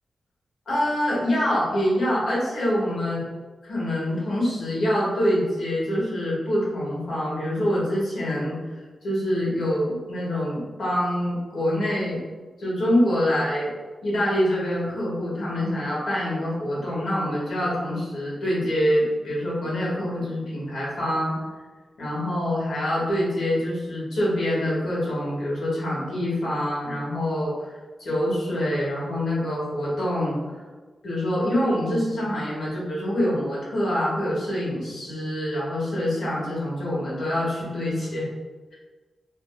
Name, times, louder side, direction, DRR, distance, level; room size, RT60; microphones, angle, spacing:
voice 1, 0.7-3.3 3.6-8.6 9.0-12.2 12.6-13.7 14.0-21.3 22.0-30.4 31.0-38.3, equal, 85° left, -7 dB, 1.5 m, -25 dB
3.5 x 3.0 x 2.2 m, 1.3 s
wide cardioid pair, 135°, 0 cm